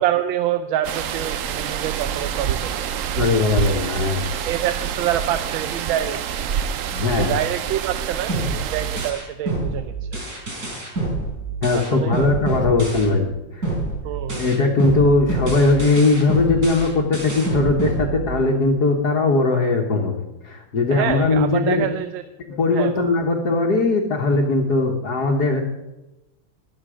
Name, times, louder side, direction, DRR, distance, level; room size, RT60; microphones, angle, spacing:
voice 1, 0.0-3.0 4.5-6.3 7.2-10.2 11.7-12.3 14.0-14.5 20.9-22.2 22.7-23.1, right 11 dB, 90° right, 10 dB, 1.4 m, -26 dB
sound 1, 0.8-9.1, right 8 dB, 70° right, 0.7 m, -27 dB
voice 2, 3.2-4.2 6.9-7.4 11.6-13.3 13.5-13.7 14.3-21.9 22.5-25.6, left 3 dB, 55° left, -1 dB, 1.8 m, -19 dB
sound 2, 8.3-13.3 13.6-18.7, right 2 dB, 55° right, 4.8 m, -27 dB
21.0 x 7.6 x 5.0 m, 1.0 s
omnidirectional pair, 2.1 m